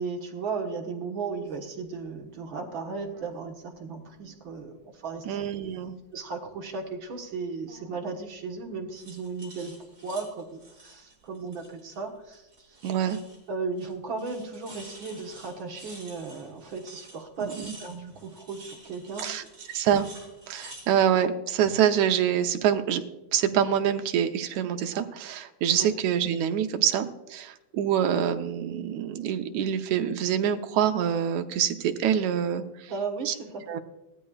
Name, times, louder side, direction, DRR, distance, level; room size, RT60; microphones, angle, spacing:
voice 1, 0.0-5.3 6.1-12.8 13.5-19.5 25.8-25.9 32.9-33.7, right 4 dB, 50° right, 2 dB, 1.7 m, -36 dB
sound 1, 1.3-1.5 3.0-3.3 3.7-4.6 5.0-6.0 7.7-8.1 8.9-12.0 12.3-13.5 13.8-13.9 14.2-20.9, right 1 dB, 25° right, 4.3 m, -49 dB
voice 2, 5.3-5.9 12.8-13.2 17.4-17.7 19.2-19.4 19.7-20.1 20.5-23.0 23.3-32.9 33.3-33.4 33.7-33.8, right 9 dB, 75° right, 6 dB, 2.2 m, -26 dB
18.5 x 13.5 x 2.4 m, 1.0 s
omnidirectional pair, 3.4 m